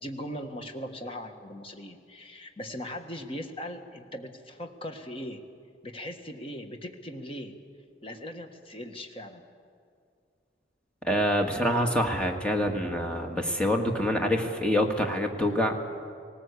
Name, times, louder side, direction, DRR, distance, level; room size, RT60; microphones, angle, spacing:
voice 1, 0.0-5.4 5.8-7.6 8.0-9.4 11.6-11.9, equal, 30° left, 5 dB, 1.5 m, -39 dB
voice 2, 11.0-15.8, equal, 5° left, 2 dB, 1.6 m, -26 dB
19.0 x 18.5 x 8.3 m, 2.3 s
head